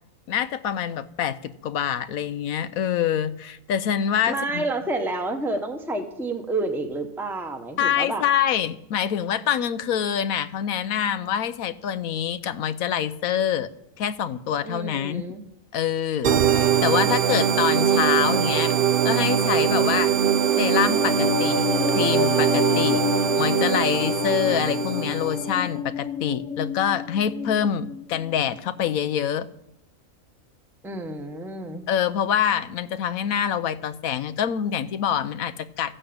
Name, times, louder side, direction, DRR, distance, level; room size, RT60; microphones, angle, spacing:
voice 1, 0.3-4.6 7.8-13.7 14.0-15.2 15.7-18.8 19.0-20.1 20.6-21.7 21.9-23.0 23.4-29.5 31.9-36.0, left 9 dB, 85° left, 13 dB, 1.2 m, -25 dB
voice 2, 4.3-8.2 14.6-15.4 30.8-31.9, right 2 dB, ahead, 5 dB, 1.1 m, -29 dB
sound 1, 16.2-25.6, right 8 dB, 55° right, 0.7 m, -22 dB
sound 2, 20.1-28.6 28.9-29.0, left 9 dB, 65° left, 1.1 m, -29 dB
14.5 x 8.8 x 8.7 m, 0.82 s
omnidirectional pair, 1.4 m